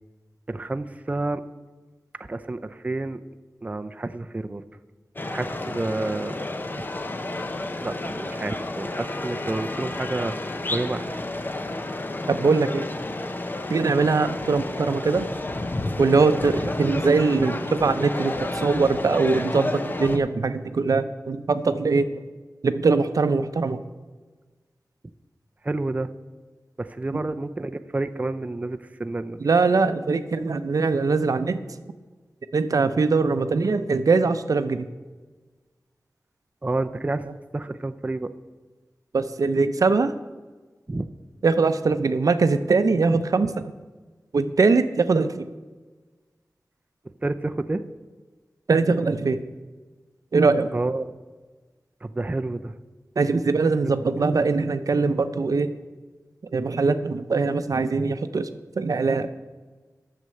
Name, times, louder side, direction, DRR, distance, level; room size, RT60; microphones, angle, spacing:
voice 1, 0.5-1.4 2.3-3.2 3.6-4.6 5.3-6.4 6.8-6.9 7.8-11.1 25.6-26.1 26.8-29.4 36.6-37.3 37.5-38.3 40.9-41.1 47.2-47.8 50.7-51.1 52.0-52.8 54.3-54.4, right 2 dB, 25° right, 8 dB, 0.4 m, -29 dB
sound 1, 5.2-20.2, left 2 dB, 35° left, 0.7 m, -31 dB
voice 2, 12.3-12.9 13.7-15.3 16.0-22.2 22.6-23.8 29.4-31.8 32.5-34.9 39.1-40.1 41.4-43.7 44.3-45.5 48.7-49.4 50.3-50.7 53.2-55.8 56.5-59.3, right 4 dB, 75° right, 11 dB, 0.6 m, -22 dB
9.3 x 6.6 x 7.7 m, 1.3 s
wide cardioid pair, 80°, 6 cm